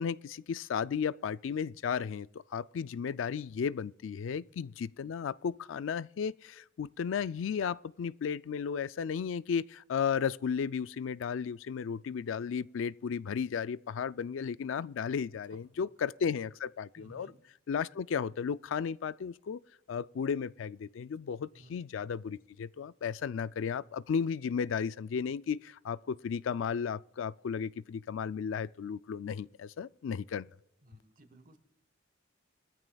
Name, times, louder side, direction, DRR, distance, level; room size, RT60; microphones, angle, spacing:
voice 1, 0.0-17.3 17.7-19.6 19.9-30.5, left 6 dB, 70° left, 0.4 m, -34 dB
voice 2, 14.2-14.5 15.5-15.6 17.0-17.4 21.5-21.8 30.8-31.6, right 1 dB, 45° right, 1.3 m, -58 dB
21.5 x 14.0 x 2.3 m
head